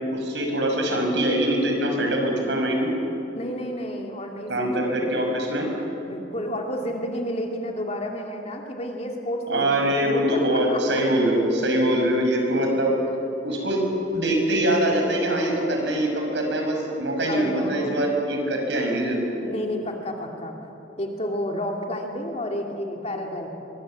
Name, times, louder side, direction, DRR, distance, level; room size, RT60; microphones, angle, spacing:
voice 1, 0.1-2.9 4.5-5.7 9.5-12.9 13.4-13.8 14.1-19.3, right 1 dB, 75° right, 1 dB, 6.1 m, -23 dB
voice 2, 3.3-5.0 6.0-11.0 13.5-13.6 17.3-18.1 19.4-20.6 21.0-23.5, equal, 35° left, 2 dB, 2.7 m, -31 dB
23.5 x 23.5 x 7.7 m, 2.9 s
head